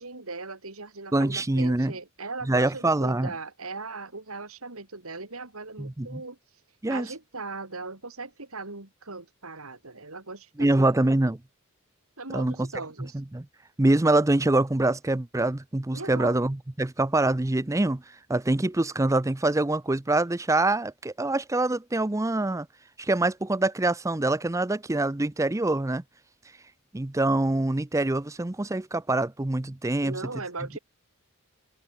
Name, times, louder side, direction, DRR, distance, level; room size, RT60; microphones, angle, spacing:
voice 1, 0.0-6.4 6.9-10.9 12.2-13.2 15.9-16.4 30.0-30.8, right 3 dB, 90° right, 3.9 m, -39 dB
voice 2, 1.1-1.9 2.4-3.3 5.8-6.2 6.8-7.1 10.6-11.4 12.3-12.7 13.0-13.5 13.8-18.0 18.3-22.7 23.0-26.0 26.9-30.2, right 2 dB, 15° right, 0.5 m, -25 dB
open air
head